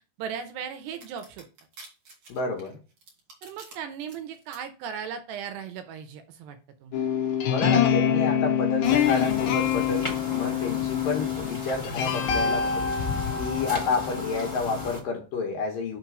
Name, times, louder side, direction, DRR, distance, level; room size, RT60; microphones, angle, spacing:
voice 1, 0.2-1.5 3.4-7.1, right 7 dB, 80° right, 8 dB, 2.8 m, -37 dB
sound 1, 1.0-3.7 4.1-4.6, right 3 dB, 45° right, 3.2 m, -47 dB
voice 2, 2.3-2.8 7.5-13.0 13.4-16.0, left 4 dB, 65° left, 1 dB, 2.4 m, -30 dB
sound 2, 6.9-15.0, left 8 dB, 85° left, 1.6 m, -26 dB
sound 3, 8.8-15.0, left 2 dB, 35° left, 0.5 m, -35 dB
6.2 x 4.5 x 6.1 m, 0.34 s
omnidirectional pair, 5.2 m